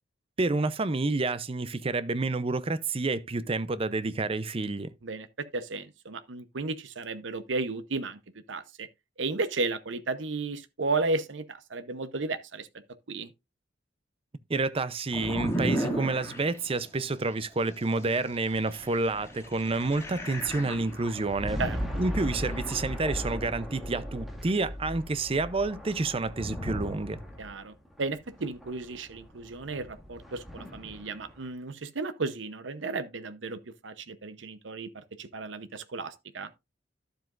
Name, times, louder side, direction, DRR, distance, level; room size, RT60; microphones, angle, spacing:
voice 1, 0.4-4.9 14.5-21.7 22.0-27.2, right 3 dB, 30° right, 0.5 m, -29 dB
voice 2, 5.0-8.2 8.5-8.9 9.2-12.7 13.1-13.3 21.6-21.8 27.4-36.5, right 3 dB, 75° right, 0.8 m, -34 dB
sound 1, 15.1-16.9 17.5-22.9, right 1 dB, 15° left, 2.2 m, -36 dB
sound 2, 18.6-31.4, equal, ahead, 1.8 m, -38 dB
11.5 x 7.6 x 2.5 m
head